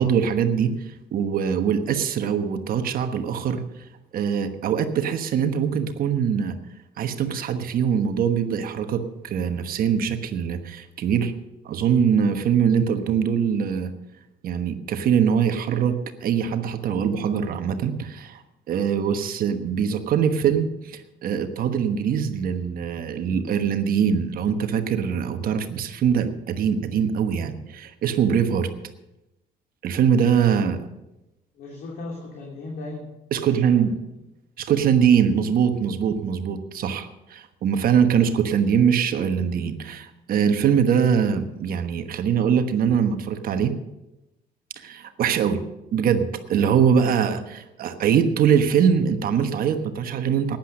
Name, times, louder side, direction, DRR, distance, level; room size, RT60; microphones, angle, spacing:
voice 1, 0.0-3.6 4.1-6.6 7.0-11.3 11.6-13.9 14.4-18.4 18.7-28.7 29.8-30.8 33.3-33.9 34.6-43.7 44.8-45.6 45.9-50.6, right 7 dB, 60° right, 8 dB, 1.2 m, -22 dB
voice 2, 31.5-33.1 33.3-34.0, left 2 dB, 65° left, -1 dB, 3.0 m, -37 dB
12.0 x 10.5 x 6.5 m, 0.96 s
cardioid pair, 110°, 17 cm